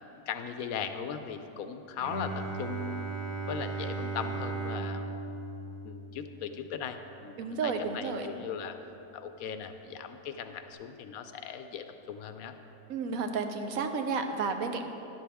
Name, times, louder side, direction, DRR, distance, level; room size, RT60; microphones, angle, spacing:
voice 1, 0.3-3.1 3.5-5.2 5.8-8.8 9.1-12.5, left 7 dB, 70° left, 8 dB, 1.0 m, -38 dB
Bowed string instrument, 2.0-7.7, right 3 dB, 40° right, 1.2 m, -37 dB
voice 2, 7.4-8.3 12.9-14.9, right 4 dB, 70° right, 6 dB, 1.1 m, -32 dB
11.5 x 11.0 x 3.5 m, 3.0 s
omnidirectional pair, 1.7 m